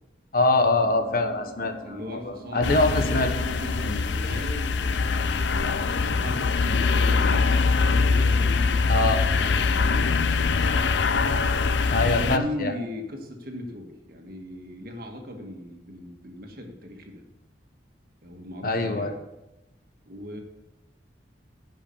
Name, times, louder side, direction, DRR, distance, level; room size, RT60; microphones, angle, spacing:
voice 1, 0.3-1.7 2.3-3.3 3.8-4.0 8.9-9.3 11.9-12.7 18.6-19.1, left 2 dB, 55° left, 6 dB, 1.1 m, -23 dB
sound 1, 0.8-9.0, right 2 dB, 30° left, 3.4 m, -47 dB
voice 2, 1.8-11.0 12.0-17.2 18.2-19.1 20.1-20.4, left 1 dB, 55° right, 3 dB, 1.6 m, -38 dB
sound 2, 2.6-12.4, left 4 dB, 80° left, 0.5 m, -23 dB
10.5 x 5.4 x 7.0 m, 0.95 s
head